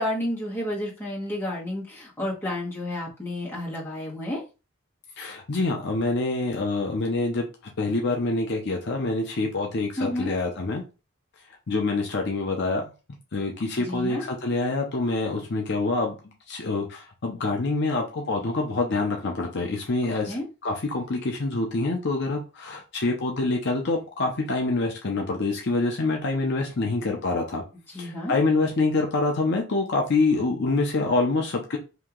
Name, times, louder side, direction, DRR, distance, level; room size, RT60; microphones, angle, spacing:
voice 1, 0.0-4.4 10.0-10.3 13.8-14.2 20.0-20.4 27.9-28.3, left 1 dB, 10° left, -5 dB, 1.2 m, -31 dB
voice 2, 5.2-7.5 7.8-10.8 11.7-12.8 13.3-16.2 16.5-20.3 20.6-27.6 28.0-31.8, left 3 dB, 50° left, 1 dB, 0.6 m, -26 dB
2.9 x 2.7 x 3.6 m, 0.30 s
head